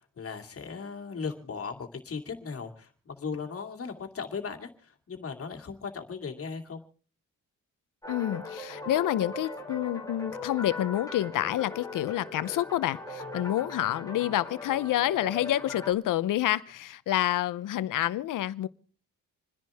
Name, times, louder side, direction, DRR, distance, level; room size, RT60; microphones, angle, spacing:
voice 1, 0.2-6.8, left 5 dB, 45° left, 2.3 m, -37 dB
sound 1, 8.0-15.9, left 2 dB, 10° left, 2.2 m, -40 dB
voice 2, 8.1-18.7, left 13 dB, 75° left, 0.8 m, -28 dB
27.5 x 10.5 x 3.5 m
cardioid pair, 105°, 32 cm